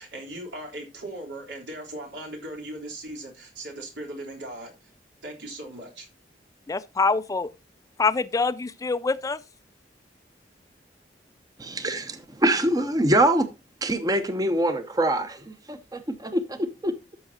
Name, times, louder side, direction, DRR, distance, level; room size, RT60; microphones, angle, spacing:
voice 1, 0.0-4.9 5.2-6.1, right 1 dB, 85° right, 3.6 m, -38 dB
voice 2, 6.7-7.5 8.0-9.4, left 4 dB, 20° left, 0.4 m, -25 dB
voice 3, 11.6-13.5 13.8-17.2, right 1 dB, 20° right, 0.8 m, -24 dB
13.5 x 6.3 x 2.8 m
head